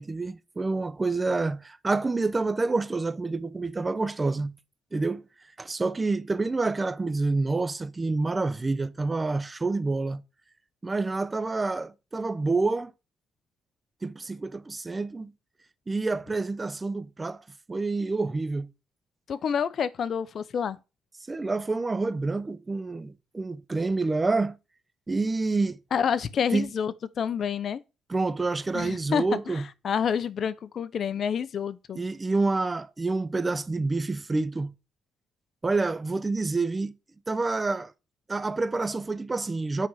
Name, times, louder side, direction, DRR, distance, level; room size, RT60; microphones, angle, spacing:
voice 1, 0.0-4.5 4.9-5.2 5.6-10.2 10.8-12.9 14.0-15.3 15.9-17.4 17.7-18.7 21.3-24.5 25.1-25.8 26.5-26.7 28.1-29.6 31.9-34.7 35.6-36.9 37.3-37.9 38.3-39.9, right 3 dB, 25° right, 0.8 m, -28 dB
voice 2, 19.3-20.8 25.9-27.8 28.7-32.0, left 7 dB, 60° left, 0.8 m, -28 dB
8.9 x 5.5 x 4.7 m
cardioid pair, 90°, 0 cm